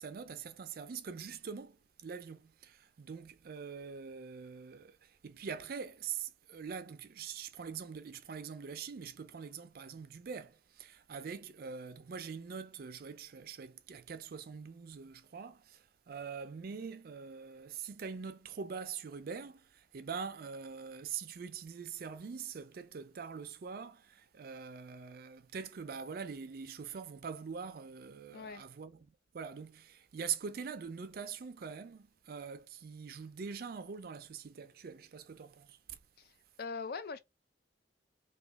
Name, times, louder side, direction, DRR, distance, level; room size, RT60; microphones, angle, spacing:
voice 1, 0.0-36.0, right 6 dB, 55° right, 0.4 m, -44 dB
voice 2, 28.3-28.6 36.2-37.2, left 5 dB, 55° left, 0.4 m, -42 dB
3.0 x 2.3 x 3.4 m
head